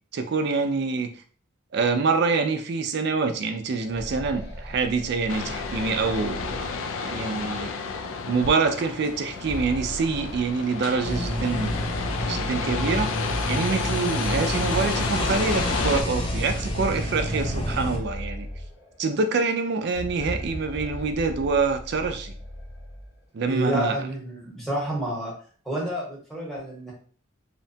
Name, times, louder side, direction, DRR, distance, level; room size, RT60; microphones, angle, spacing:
voice 1, 0.1-1.1 1.7-6.7 7.0-7.7 8.3-11.8 12.3-13.1 13.5-18.5 19.0-22.3 23.3-24.0, right 4 dB, 55° right, 7 dB, 0.4 m, -26 dB
sound 1, 3.7-7.4 9.1-11.3 11.6-11.7 12.6-12.7 13.2-13.3 15.0-19.1 19.8-23.2, left 1 dB, 55° left, 0.7 m, -38 dB
sound 2, 5.3-16.0, left 4 dB, 80° left, 0.3 m, -31 dB
sound 3, 11.0-18.0, equal, 25° left, 0.5 m, -29 dB
voice 2, 23.5-25.3 25.6-26.9, right 1 dB, ahead, -5 dB, 0.9 m, -29 dB
2.8 x 2.2 x 2.7 m, 0.43 s
head